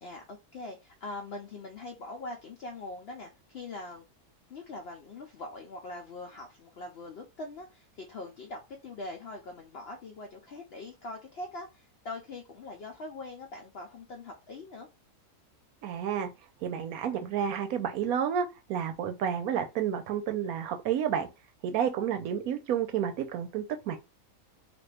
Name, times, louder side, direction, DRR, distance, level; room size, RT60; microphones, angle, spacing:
voice 1, 0.0-4.1 4.5-14.9, left 2 dB, 65° left, 0.6 m, -42 dB
voice 2, 15.8-16.3 16.6-21.3 21.6-24.0, right 8 dB, 80° right, 1.1 m, -30 dB
3.0 x 2.5 x 3.2 m
omnidirectional pair, 1.6 m